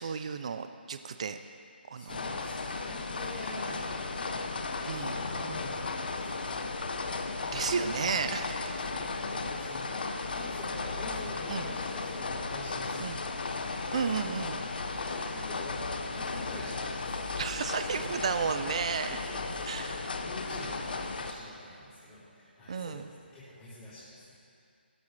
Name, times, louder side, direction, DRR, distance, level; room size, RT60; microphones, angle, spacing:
voice 1, 0.0-1.4 1.9-2.2 4.8-5.2 7.5-8.5 11.5-11.7 13.0-13.2 13.9-14.6 17.4-19.2 19.7-20.2 22.7-23.1, right 6 dB, 35° right, 9 dB, 0.4 m, -33 dB
voice 2, 1.9-7.1 8.1-14.3 14.7-17.2 18.0-18.3 19.2-24.4, left 1 dB, 10° left, -16 dB, 3.5 m, -46 dB
sound 1, 2.1-21.3, left 3 dB, 55° left, 0.9 m, -35 dB
15.5 x 13.5 x 3.3 m, 2.4 s
hypercardioid pair, 170°, 6 cm